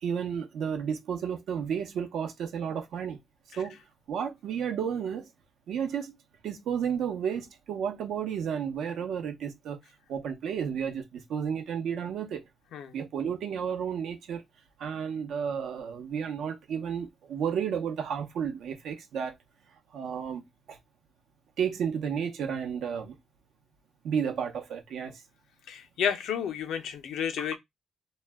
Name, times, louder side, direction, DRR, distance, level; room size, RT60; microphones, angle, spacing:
voice 1, 0.0-3.2 3.6-3.8 4.1-5.3 5.7-6.1 6.4-9.8 10.1-12.4 12.9-14.4 14.8-19.3 19.9-20.4 20.7-20.8 21.6-23.2 24.0-25.2 27.4-27.6, right 7 dB, 75° right, 0.7 m, -32 dB
voice 2, 25.7-27.6, left 8 dB, 75° left, 0.6 m, -31 dB
2.3 x 2.1 x 3.3 m
cardioid pair, 90°, 0 cm